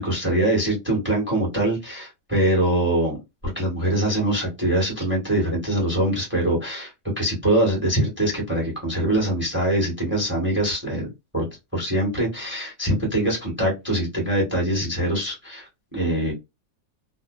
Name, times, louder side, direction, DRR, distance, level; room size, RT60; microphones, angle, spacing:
voice 1, 0.0-3.2 3.4-11.5 11.7-16.3, right 1 dB, 10° right, -2 dB, 0.8 m, -23 dB
2.7 x 2.1 x 2.2 m, 0.22 s
omnidirectional pair, 1.8 m